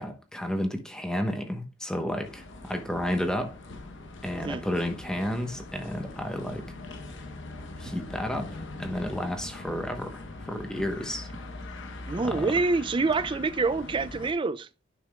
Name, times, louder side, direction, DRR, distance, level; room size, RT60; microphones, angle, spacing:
voice 1, 0.0-3.5 4.2-6.7 7.8-11.3 12.2-12.5, equal, 5° left, 1.0 m, -32 dB
sound 1, 2.2-14.3, left 2 dB, 60° left, 0.9 m, -42 dB
voice 2, 12.1-14.7, right 3 dB, 25° right, 0.3 m, -26 dB
10.5 x 5.8 x 2.3 m
head